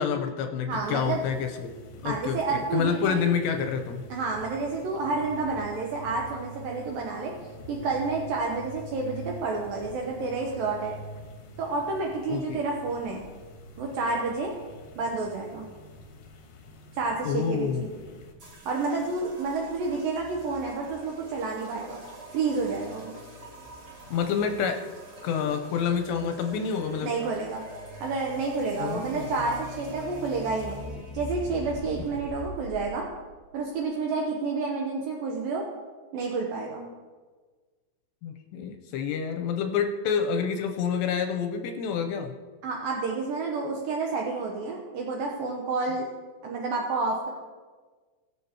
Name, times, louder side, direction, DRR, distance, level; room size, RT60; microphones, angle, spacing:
voice 1, 0.0-1.7 2.0-4.1 12.3-12.6 17.2-17.9 24.1-24.8 25.2-27.1 28.8-29.3 38.2-42.3, left 7 dB, 85° left, 5 dB, 2.7 m, -28 dB
voice 2, 0.6-1.2 2.0-3.2 4.1-7.3 7.7-10.9 11.6-13.2 13.8-14.5 15.0-15.7 16.9-18.0 18.7-22.0 22.3-23.2 27.0-27.7 28.0-30.9 31.1-33.0 33.5-35.6 36.1-36.8 42.6-46.1 46.4-47.3, right 3 dB, 75° right, -1 dB, 2.1 m, -29 dB
sound 1, 0.7-18.3, right 1 dB, 70° left, 2.0 m, -46 dB
sound 2, 18.2-34.0, equal, 60° right, 4.3 m, -45 dB
sound 3, 18.4-32.7, right 2 dB, 30° right, 3.0 m, -47 dB
21.5 x 7.2 x 3.0 m, 1.4 s
omnidirectional pair, 5.3 m